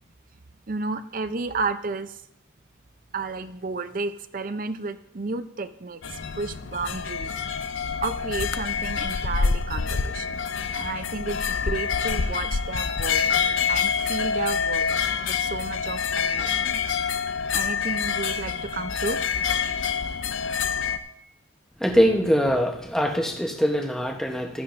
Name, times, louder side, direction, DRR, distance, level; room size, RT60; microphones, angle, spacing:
voice 1, 0.7-2.2 3.1-7.3 8.0-10.4 10.7-13.2 13.7-14.9 15.2-16.8 17.5-19.2, right 3 dB, 45° right, 11 dB, 0.5 m, -32 dB
sound 1, 6.0-21.0, left 6 dB, 75° left, 0.6 m, -26 dB
voice 2, 21.8-24.6, equal, 5° left, 1 dB, 0.9 m, -23 dB
15.0 x 12.0 x 2.6 m, 0.77 s
head